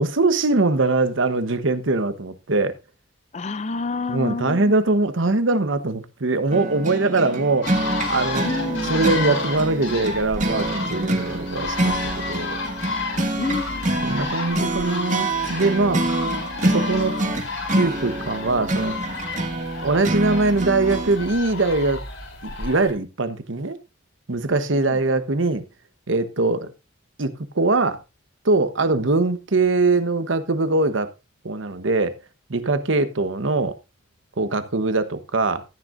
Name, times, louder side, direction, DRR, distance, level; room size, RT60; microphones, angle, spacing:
voice 1, 0.0-2.7 4.1-8.5 8.9-12.6 12.8-13.0 14.0-16.1 16.6-17.2 17.7-18.9 19.8-22.0 22.4-23.8 24.3-25.6 26.1-26.7 27.2-28.0 28.4-31.1 31.4-32.1 32.5-33.7 34.4-35.6, right 3 dB, 75° right, 1.1 m, -22 dB
voice 2, 3.3-4.7 8.4-9.1 13.3-13.9 24.8-25.0, left 3 dB, 35° left, 0.4 m, -29 dB
sound 1, 6.5-21.2, right 2 dB, 40° right, 1.7 m, -26 dB
sound 2, 7.6-22.9, left 3 dB, 85° left, 3.5 m, -31 dB
14.0 x 9.2 x 2.6 m
head